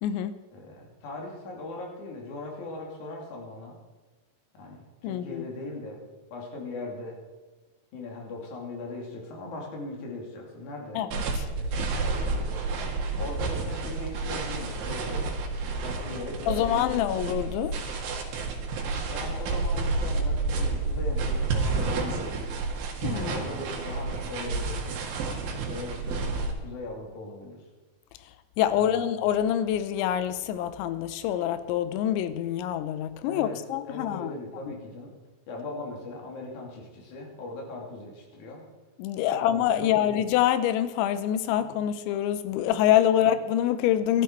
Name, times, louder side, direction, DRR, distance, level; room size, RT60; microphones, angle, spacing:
voice 1, 0.0-0.4 5.0-5.4 11.0-11.2 16.5-17.8 23.0-23.3 28.6-34.3 39.0-44.2, left 11 dB, 80° left, 12 dB, 3.0 m, -25 dB
voice 2, 0.5-3.8 4.5-6.0 6.3-7.2 7.9-11.0 11.3-12.8 13.2-15.3 15.8-17.2 19.1-22.5 23.1-25.0 25.7-27.7 28.7-29.1 33.2-33.6 33.8-35.2 35.5-38.6 39.1-40.1 41.5-41.7, left 2 dB, 45° left, -1 dB, 3.7 m, -39 dB
sound 1, 11.1-26.5, right 3 dB, 85° right, 4.5 m, -30 dB
19.0 x 13.0 x 4.6 m, 1.3 s
omnidirectional pair, 5.4 m